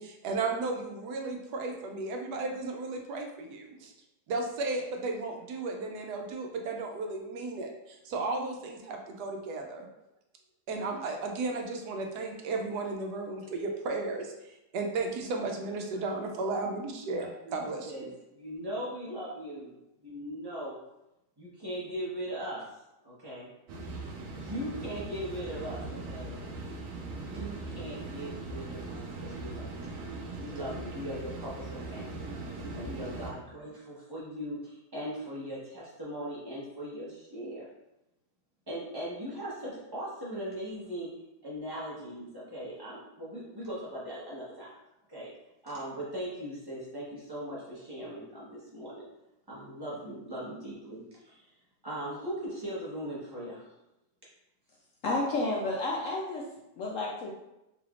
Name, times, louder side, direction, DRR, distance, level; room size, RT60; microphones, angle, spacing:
voice 1, 0.0-3.9 4.3-9.9 10.7-18.1, right 3 dB, 80° right, 2 dB, 1.1 m, -34 dB
voice 2, 17.2-18.1 18.3-20.8 21.4-22.7 23.0-23.5 24.4-26.4 27.1-29.9 30.4-32.3 32.7-37.7 38.7-41.1 41.4-44.8 45.1-45.3 45.6-49.1 49.5-51.5 51.8-53.7, equal, 15° right, -7 dB, 0.9 m, -39 dB
sound 1, 23.7-33.3, right 2 dB, 65° right, 1.0 m, -40 dB
voice 3, 55.0-56.4 56.8-57.3, left 2 dB, 65° left, -2 dB, 0.8 m, -31 dB
3.9 x 3.3 x 2.4 m, 0.91 s
omnidirectional pair, 1.7 m